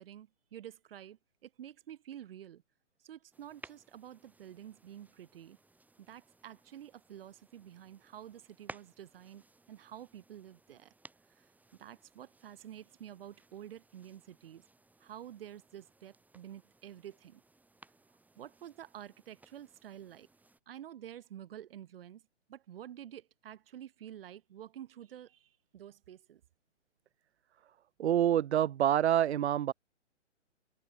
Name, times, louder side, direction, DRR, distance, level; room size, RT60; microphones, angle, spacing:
voice 1, 0.0-2.6 3.0-5.6 6.1-10.9 11.4-11.5 11.8-14.6 15.0-17.4 18.4-20.3 20.7-22.2 22.5-26.4, right 11 dB, 50° right, 6.2 m, -49 dB
sound 1, 3.3-20.6, right 2 dB, 5° right, 7.9 m, -59 dB
voice 2, 28.0-29.7, right 11 dB, 65° right, 0.5 m, -27 dB
hypercardioid pair, 135°, 36 cm